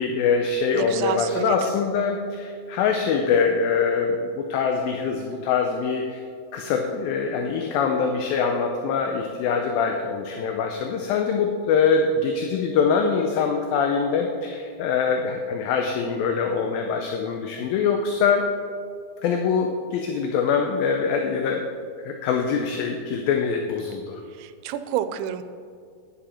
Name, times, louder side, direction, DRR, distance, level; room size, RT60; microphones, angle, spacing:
voice 1, 0.0-6.2 6.5-18.5 19.2-21.6 22.0-24.2, left 5 dB, 75° left, 3 dB, 2.3 m, -24 dB
voice 2, 0.7-1.7 24.4-25.4, right 10 dB, 90° right, 11 dB, 2.6 m, -29 dB
10.0 x 10.0 x 4.3 m, 2.2 s
omnidirectional pair, 4.5 m